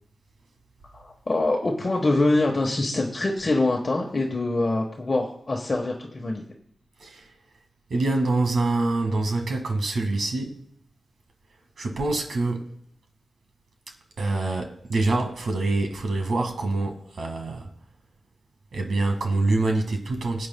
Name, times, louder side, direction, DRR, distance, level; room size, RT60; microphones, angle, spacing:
voice 1, 0.9-6.4, left 2 dB, 40° left, 1.2 m, -24 dB
voice 2, 7.9-10.6 11.8-12.8 14.2-17.7 18.7-20.5, right 2 dB, 85° right, 1.8 m, -25 dB
21.5 x 8.6 x 2.2 m
wide cardioid pair, 95°, 0 cm